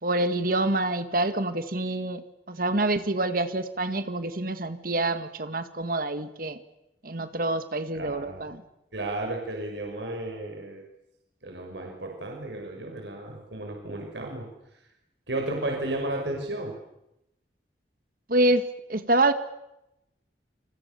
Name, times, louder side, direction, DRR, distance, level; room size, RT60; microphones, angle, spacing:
voice 1, 0.0-2.2 2.5-6.6 7.0-8.6 18.3-19.3, right 2 dB, 55° right, 10 dB, 1.9 m, -26 dB
voice 2, 7.9-8.5 8.9-10.8 11.4-14.5 15.3-16.7, right 2 dB, 85° right, 1 dB, 6.3 m, -33 dB
29.0 x 27.0 x 7.1 m, 0.87 s
head